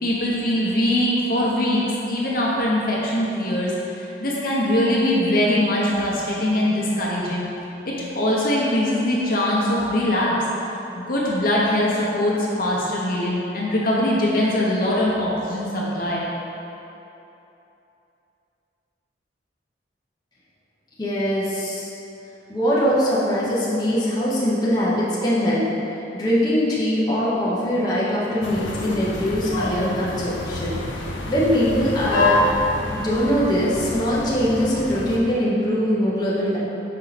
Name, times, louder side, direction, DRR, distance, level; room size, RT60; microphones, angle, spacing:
voice 1, 0.0-7.5 8.0-10.4 11.1-16.3, left 1 dB, 50° left, -5 dB, 0.9 m, -22 dB
voice 2, 21.0-21.9 22.5-25.6 25.9-32.3 32.9-36.6, equal, 20° left, -8 dB, 0.8 m, -22 dB
sound 1, 28.4-35.2, left 1 dB, 85° left, 0.7 m, -26 dB
5.4 x 4.4 x 4.1 m, 2.9 s
head